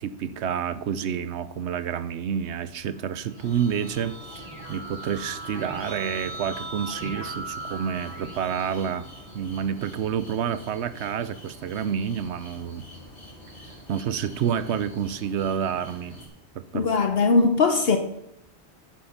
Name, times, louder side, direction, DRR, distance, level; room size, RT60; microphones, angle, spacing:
voice 1, 0.0-4.2 4.7-9.1 9.3-12.9 13.9-16.2 16.5-16.9, right 8 dB, 85° right, 14 dB, 1.0 m, -29 dB
Keyboard (musical), 3.0-9.7, right 2 dB, 20° right, 3.6 m, -39 dB
sound 1, 3.4-16.3, equal, 90° left, 3.8 m, -46 dB
voice 2, 16.7-18.0, left 4 dB, 60° left, 7 dB, 1.0 m, -20 dB
10.5 x 8.6 x 5.7 m, 0.84 s
omnidirectional pair, 1.1 m